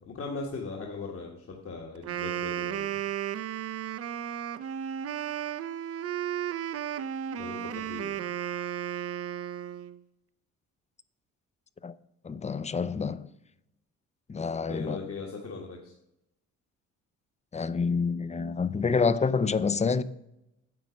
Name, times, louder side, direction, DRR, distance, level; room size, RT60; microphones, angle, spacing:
voice 1, 0.1-2.9 7.4-8.2 14.7-15.9, left 4 dB, 50° left, 1.6 m, -39 dB
Wind instrument woodwind instrument, 2.0-10.0, right 10 dB, 50° right, 0.6 m, -34 dB
voice 2, 12.2-13.3 14.3-15.0 17.5-20.0, left 5 dB, 25° left, 0.5 m, -27 dB
9.5 x 7.3 x 5.2 m
cardioid pair, 90°, 30 cm